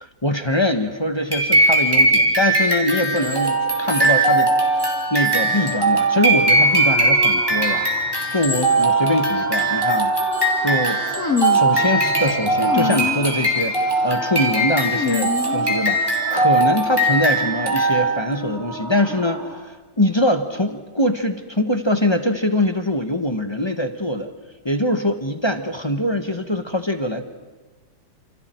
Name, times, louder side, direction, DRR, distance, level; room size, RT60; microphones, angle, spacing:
voice 1, 0.2-4.5 4.8-7.9 8.3-10.1 10.6-11.0 11.5-13.8 14.0-19.5 20.0-24.3 24.6-27.2, left 1 dB, 20° left, 6 dB, 0.9 m, -23 dB
sound 1, 1.3-18.3, right 2 dB, 10° right, 3.2 m, -20 dB
sound 2, 3.1-19.6, equal, 30° right, 6.3 m, -35 dB
sound 3, 11.2-11.8 12.6-13.3 13.6-14.1 14.9-16.1, left 6 dB, 50° left, 1.9 m, -26 dB
29.5 x 28.0 x 4.5 m, 1.3 s
omnidirectional pair, 2.0 m